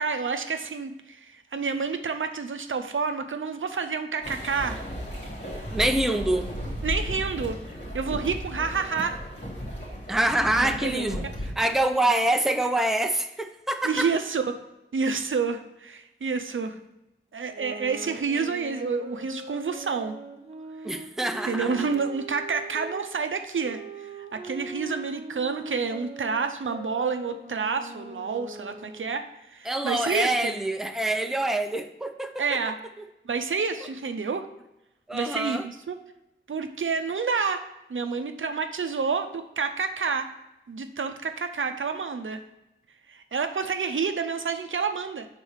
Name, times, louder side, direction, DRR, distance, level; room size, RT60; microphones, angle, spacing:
voice 1, 0.0-4.8 6.8-7.6 7.9-9.2 10.6-11.3 13.8-14.6 14.9-16.8 17.3-20.1 21.5-29.2 29.5-30.5 32.4-32.8 33.3-34.5 35.1-36.0 36.5-37.6 37.9-40.3 40.7-42.4 43.1-45.3, right 5 dB, 70° right, 7 dB, 0.6 m, -29 dB
sound 1, 4.2-11.5, equal, 60° left, 2.0 m, -35 dB
voice 2, 5.7-6.5 10.1-11.3 11.6-14.1 20.8-21.7 29.7-32.6 35.1-35.6, right 1 dB, ahead, 6 dB, 0.5 m, -25 dB
sound 2, 17.4-23.0 23.6-29.2, right 2 dB, 30° right, 0.9 m, -42 dB
5.5 x 4.1 x 4.8 m, 0.89 s
wide cardioid pair, 60°, 21 cm